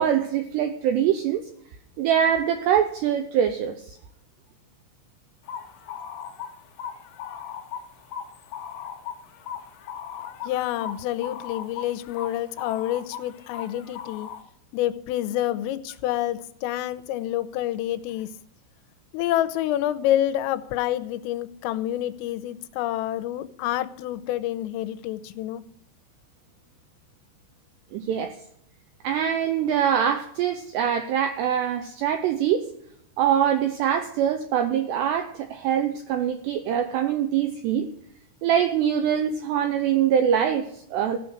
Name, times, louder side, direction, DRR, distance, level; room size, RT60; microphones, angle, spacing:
voice 1, 0.0-1.5 2.0-4.0 27.9-28.4 29.0-32.7 33.2-37.9 38.4-41.2, right 9 dB, 80° right, 2.5 m, -23 dB
sound 1, 5.5-14.4, left 8 dB, 70° left, 2.6 m, -38 dB
voice 2, 10.4-14.3 14.7-18.3 19.1-25.6, left 13 dB, 90° left, 3.3 m, -28 dB
15.0 x 6.3 x 9.4 m
omnidirectional pair, 5.8 m